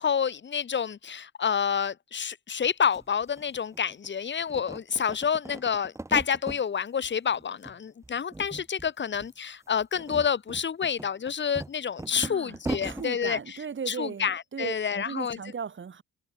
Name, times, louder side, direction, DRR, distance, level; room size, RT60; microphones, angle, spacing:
voice 1, 0.0-13.4 13.9-15.4, left 7 dB, 40° left, 1.5 m, -28 dB
sound 1, 2.6-2.7 2.9-4.1 4.4-6.6 7.0-7.8 8.0-8.9 9.1-9.3 9.8-13.1, right 2 dB, 10° right, 0.9 m, -38 dB
voice 2, 12.1-16.0, right 6 dB, 40° right, 3.2 m, -37 dB
cardioid pair, 90°, 30 cm